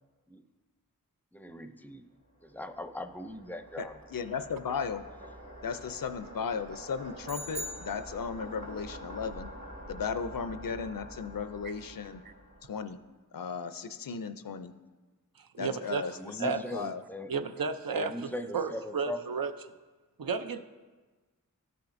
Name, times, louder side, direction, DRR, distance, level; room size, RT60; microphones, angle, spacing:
voice 1, 1.3-2.1 2.4-3.9 16.1-17.3 17.9-19.2, left 1 dB, 5° left, 8 dB, 0.4 m, -40 dB
sound 1, 2.3-13.0, right 1 dB, 65° right, 2.5 m, -47 dB
voice 2, 3.8-5.0 5.6-9.5 9.9-12.2 12.7-13.0 13.3-14.7 15.6-17.0, left 6 dB, 75° left, 11 dB, 0.5 m, -36 dB
sound 2, 7.3-8.7, right 1 dB, 40° right, 0.6 m, -41 dB
voice 3, 15.4-16.0 16.4-16.6 17.3-19.5 20.2-20.6, right 5 dB, 80° right, 8 dB, 0.5 m, -33 dB
13.0 x 5.8 x 2.6 m, 1.3 s
wide cardioid pair, 40°, 34 cm